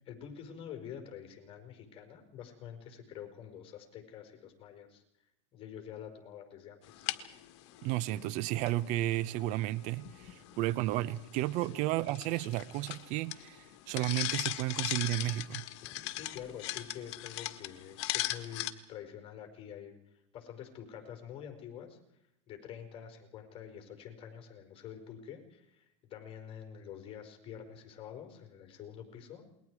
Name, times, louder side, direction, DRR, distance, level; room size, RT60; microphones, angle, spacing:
voice 1, 0.1-5.0 5.5-7.1 8.1-8.3 11.6-11.8 15.8-22.0 22.5-29.5, left 8 dB, 35° left, 5.0 m, -47 dB
sound 1, 6.8-18.7, left 16 dB, 65° left, 1.7 m, -40 dB
voice 2, 7.8-15.7, right 16 dB, 55° right, 0.8 m, -33 dB
28.5 x 21.5 x 4.8 m
supercardioid pair, 120°, 15 cm